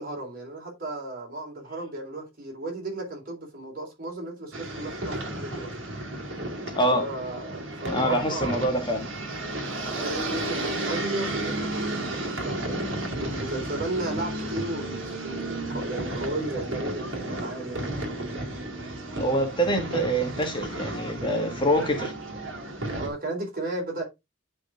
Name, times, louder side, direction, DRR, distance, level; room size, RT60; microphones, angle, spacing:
voice 1, 0.0-5.7 6.9-8.7 9.9-12.8 13.1-14.9 15.2-17.9 23.0-24.0, right 2 dB, 45° right, 3.9 m, -34 dB
sound 1, 4.5-23.1, right 1 dB, 70° right, 2.4 m, -33 dB
voice 2, 6.7-7.1 7.9-9.1 19.2-22.1, right 1 dB, 25° left, 1.6 m, -25 dB
9.9 x 5.2 x 3.6 m
head